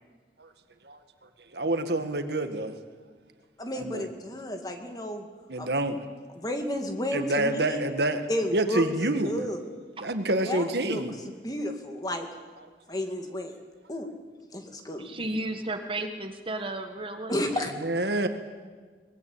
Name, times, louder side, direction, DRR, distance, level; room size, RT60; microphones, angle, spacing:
voice 1, 1.5-2.8 3.8-4.1 5.5-6.0 7.1-8.2 8.5-9.4 10.0-11.2 17.8-18.3, right 1 dB, 70° right, 8 dB, 1.9 m, -27 dB
voice 2, 3.6-5.3 5.6-5.7 6.3-7.8 8.3-8.9 9.2-9.7 10.4-11.0 11.4-12.3 12.9-13.6 13.9-14.1 14.5-15.1 17.3-17.7, equal, 20° left, 5 dB, 2.2 m, -32 dB
voice 3, 15.0-17.7, right 2 dB, 30° right, 7 dB, 1.4 m, -34 dB
23.5 x 20.5 x 8.7 m, 1.5 s
head